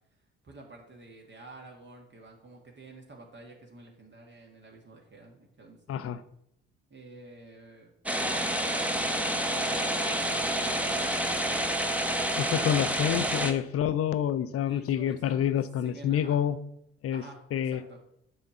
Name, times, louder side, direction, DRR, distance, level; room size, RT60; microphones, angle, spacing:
voice 1, 0.4-6.2 6.9-7.9 8.2-12.8 14.7-15.5 15.8-16.4 17.1-18.0, right 2 dB, 35° right, 1 dB, 1.8 m, -49 dB
voice 2, 5.9-6.2 12.4-16.6 17.0-17.2 17.5-17.8, left 9 dB, 45° left, 14 dB, 0.7 m, -28 dB
sound 1, 8.1-13.5, right 1 dB, 5° right, 1.1 m, -28 dB
7.0 x 5.2 x 6.9 m, 0.78 s
figure-of-eight pair, 45°, 33 cm